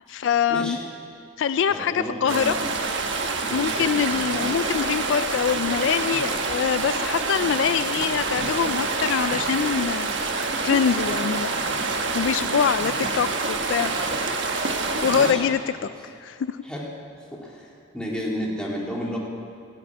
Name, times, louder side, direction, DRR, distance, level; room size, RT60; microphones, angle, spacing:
voice 1, 0.1-0.8 1.4-2.5 3.5-10.1 10.6-11.5 12.1-13.9 15.0-15.9 16.2-16.6, left 7 dB, 60° left, 13 dB, 0.3 m, -24 dB
voice 2, 1.7-2.6 3.5-3.8 15.1-15.4 15.8-15.9 16.6-16.8 17.3-17.7 17.9-19.2, equal, 5° left, -4 dB, 2.3 m, -31 dB
sound 1, 2.3-15.3, right 3 dB, 55° right, 1.3 m, -27 dB
15.5 x 8.2 x 9.5 m, 2.5 s
head